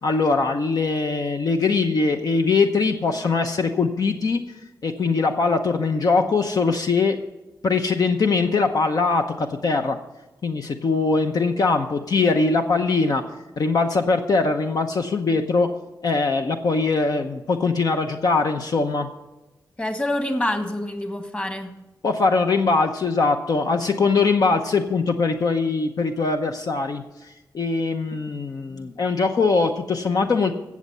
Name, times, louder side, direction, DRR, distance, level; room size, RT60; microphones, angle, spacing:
voice 1, 0.0-4.4 4.8-7.2 7.6-10.0 10.4-13.2 13.6-15.8 16.0-19.1 22.0-30.5, left 4 dB, 60° left, 5 dB, 0.8 m, -22 dB
voice 2, 19.8-21.7 28.7-28.9, left 1 dB, 20° left, 7 dB, 1.5 m, -27 dB
16.0 x 7.3 x 5.5 m, 1.0 s
wide cardioid pair, 100°, 7 cm